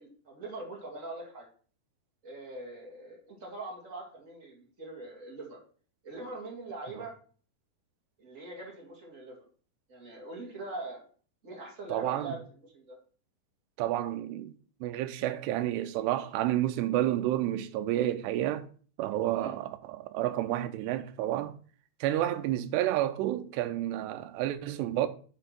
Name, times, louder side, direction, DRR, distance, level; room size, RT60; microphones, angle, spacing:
voice 1, 0.0-1.5 2.2-5.6 6.0-7.1 8.2-9.4 9.9-11.0 11.4-12.4 12.7-13.0 19.3-19.6, right 2 dB, 30° right, 1.7 m, -42 dB
voice 2, 11.9-12.3 13.8-14.5 14.8-18.7 19.0-21.6 22.0-25.1, right 13 dB, 90° right, 2.8 m, -30 dB
7.7 x 4.4 x 6.0 m
omnidirectional pair, 4.8 m